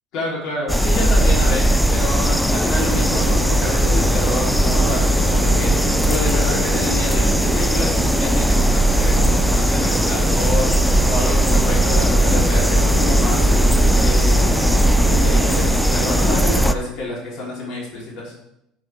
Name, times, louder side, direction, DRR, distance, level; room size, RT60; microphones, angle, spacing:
voice 1, 0.1-5.7 6.0-13.5 14.0-18.3, left 2 dB, 60° left, -4 dB, 4.1 m, -28 dB
sound 1, 0.7-16.7, equal, 5° left, 0.6 m, -17 dB
sound 2, 2.8-16.7, right 6 dB, 80° right, 1.0 m, -29 dB
14.5 x 5.2 x 3.8 m, 0.81 s
hypercardioid pair, 70°, 0 cm